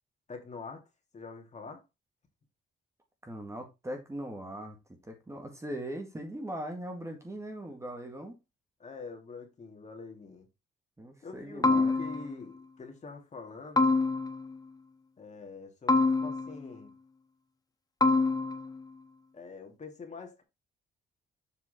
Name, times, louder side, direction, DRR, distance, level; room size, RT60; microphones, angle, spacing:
voice 1, 0.3-0.8 1.1-1.8 8.8-10.5 11.2-13.9 15.2-17.0 19.3-20.4, left 4 dB, 35° left, 2.6 m, -45 dB
voice 2, 3.2-4.8 5.0-8.4 11.0-12.0, right 1 dB, 15° right, 1.9 m, -40 dB
sound 1, 11.6-12.4 13.8-14.6 15.9-16.7 18.0-18.8, left 3 dB, 20° left, 0.8 m, -26 dB
7.4 x 4.4 x 4.3 m
cardioid pair, 90°, 20 cm